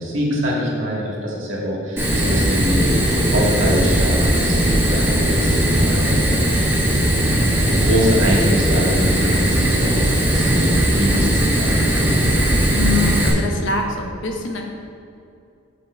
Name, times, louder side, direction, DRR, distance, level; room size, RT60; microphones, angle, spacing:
voice 1, 0.0-6.9 7.7-11.8, equal, 80° right, -3 dB, 1.9 m, -24 dB
Fire, 2.0-13.3, right 1 dB, 10° right, 1.3 m, -18 dB
voice 2, 12.8-14.6, left 3 dB, 65° left, 2 dB, 0.9 m, -24 dB
6.6 x 6.4 x 4.4 m, 2.5 s
head